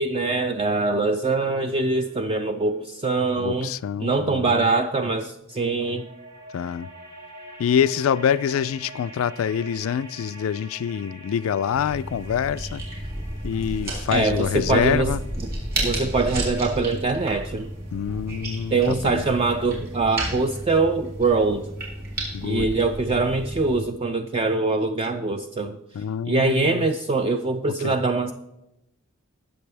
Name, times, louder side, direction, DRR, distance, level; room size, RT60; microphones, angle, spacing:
voice 1, 0.0-3.7 4.0-6.1 14.1-15.1 15.8-17.7 18.7-21.7 22.4-25.8 26.3-28.3, right 3 dB, 25° right, 0.4 m, -23 dB
sound 1, 1.5-4.7 5.5-20.4, right 1 dB, 85° right, 2.6 m, -47 dB
voice 2, 3.4-4.7 6.5-6.9 7.6-12.8 13.4-15.2 17.9-19.2 22.3-22.7 25.9-26.9 27.7-28.0, left 8 dB, 70° left, 0.3 m, -26 dB
sound 2, 11.7-23.8, right 1 dB, 45° right, 3.7 m, -32 dB
19.0 x 6.8 x 3.4 m
head